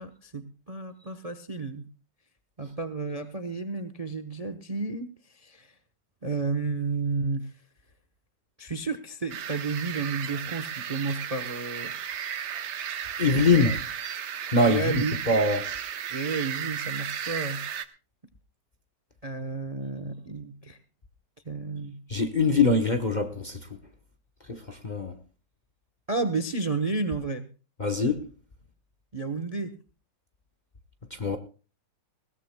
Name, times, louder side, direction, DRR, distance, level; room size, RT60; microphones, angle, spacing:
voice 1, 0.0-1.9 2.6-5.7 6.2-7.5 8.6-11.9 13.6-13.8 14.7-15.2 16.1-17.6 19.2-20.8 21.4-22.0 26.1-27.5 29.1-29.8, right 4 dB, 30° right, 0.7 m, -32 dB
sound 1, 9.3-17.8, right 8 dB, 65° right, 1.6 m, -34 dB
voice 2, 13.2-13.7 14.5-15.7 22.1-23.8 24.5-25.2 27.8-28.3 31.1-31.4, left 3 dB, 30° left, 0.9 m, -23 dB
21.0 x 17.0 x 2.2 m
omnidirectional pair, 2.0 m